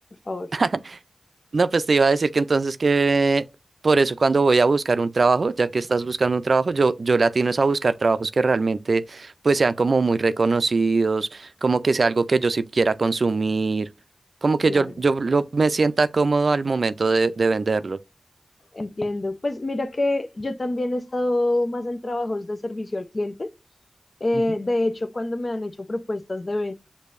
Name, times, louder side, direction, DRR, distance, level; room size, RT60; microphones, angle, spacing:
voice 1, 0.5-1.0 1.5-3.5 3.8-13.9 14.4-18.0, right 3 dB, 70° right, 0.3 m, -21 dB
voice 2, 18.7-23.5 24.2-26.7, left 2 dB, 50° left, 0.6 m, -26 dB
6.5 x 2.6 x 2.5 m
cardioid pair, 40°, 0 cm